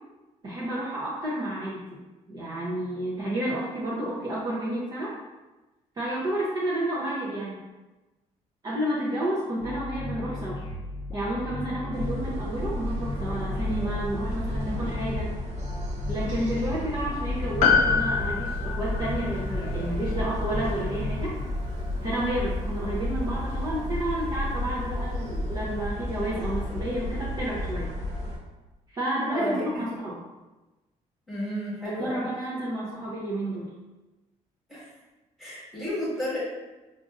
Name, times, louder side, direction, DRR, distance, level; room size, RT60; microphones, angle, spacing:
voice 1, 0.4-1.8 2.3-5.1 5.9-7.6 8.6-10.6 11.1-15.3 16.1-21.3 22.0-27.9 28.9-30.2 31.8-33.7, right 1 dB, 30° right, -7 dB, 0.6 m, -30 dB
sound 1, 9.6-21.9, left 1 dB, 35° left, 0.5 m, -36 dB
sound 2, 11.9-28.4, left 1 dB, 65° right, 0.7 m, -32 dB
Piano, 17.6-22.2 22.5-22.6, left 6 dB, 80° left, 0.5 m, -27 dB
voice 2, 29.3-29.9 31.3-32.3 34.7-34.9 35.4-36.4, equal, ahead, -9 dB, 1.4 m, -32 dB
5.0 x 2.5 x 2.4 m, 1.1 s
cardioid pair, 165°, 12 cm